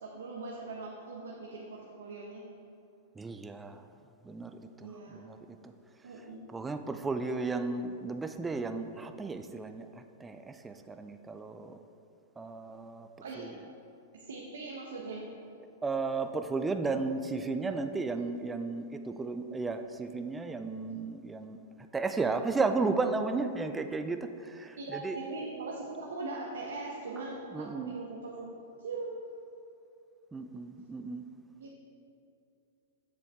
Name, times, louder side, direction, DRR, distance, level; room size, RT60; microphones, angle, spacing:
voice 1, 0.0-2.5 4.8-5.2 6.0-6.4 13.2-13.5 14.1-15.3 24.8-29.3 31.6-31.7, right 3 dB, 85° right, -2 dB, 0.9 m, -41 dB
voice 2, 3.2-3.8 4.2-5.4 5.6-5.7 6.5-11.8 12.4-13.1 13.4-13.7 15.8-21.6 21.9-25.2 27.5-28.0 30.3-31.2, right 3 dB, 10° right, 8 dB, 0.4 m, -34 dB
7.2 x 6.8 x 3.6 m, 2.5 s
hypercardioid pair, 120°, 0 cm